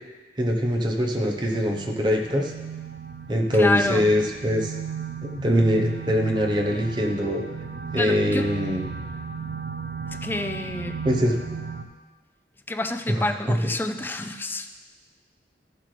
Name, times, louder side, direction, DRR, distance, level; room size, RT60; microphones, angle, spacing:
voice 1, 0.4-2.5 3.3-4.7 5.2-7.4 7.9-8.8 11.0-11.4 13.1-13.2, equal, 25° right, 1 dB, 0.9 m, -23 dB
sound 1, 0.6-11.8, right 6 dB, 65° right, 0.6 m, -36 dB
voice 2, 3.6-4.1 8.0-8.5 10.1-11.0 12.7-14.7, left 2 dB, 10° left, 6 dB, 0.4 m, -28 dB
13.5 x 7.6 x 3.3 m, 1.3 s
head